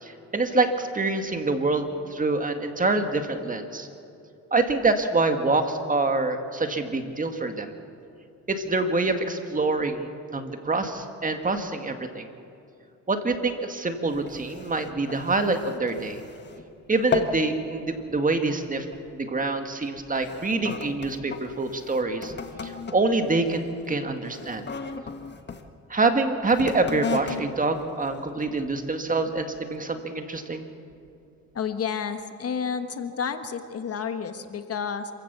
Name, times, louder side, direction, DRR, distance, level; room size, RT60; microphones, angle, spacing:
voice 1, 0.0-3.9 4.5-7.7 8.5-12.3 13.1-16.2 16.9-18.9 19.1-22.3 22.6-24.7 25.9-30.7, right 3 dB, 25° right, 6 dB, 1.9 m, -26 dB
sound 1, 14.1-16.7 16.9-17.5 17.9-18.2 18.9-19.1 19.8-25.7 26.4-28.8 29.4-29.5, left 5 dB, 35° left, 1.6 m, -36 dB
voice 2, 31.5-35.1, left 6 dB, 50° left, 8 dB, 1.4 m, -30 dB
27.0 x 16.0 x 7.0 m, 2.6 s
cardioid pair, 90°, 30 cm